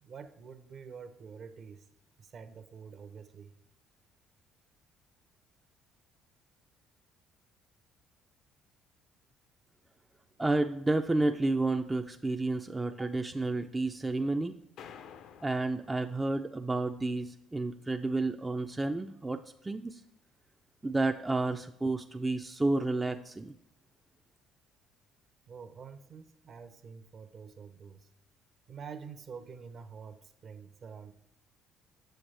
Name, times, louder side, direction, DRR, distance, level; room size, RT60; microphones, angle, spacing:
voice 1, 0.0-1.9 2.2-3.5 25.5-28.1 28.7-31.1, right 6 dB, 50° right, 9 dB, 0.7 m, -47 dB
voice 2, 10.4-14.5 15.4-20.0 20.8-23.5, right 2 dB, 15° right, 6 dB, 0.4 m, -31 dB
sound 1, 14.8-16.8, left 8 dB, 70° left, 0.5 m, -52 dB
7.7 x 7.1 x 3.3 m, 0.79 s
cardioid pair, 100°, 0 cm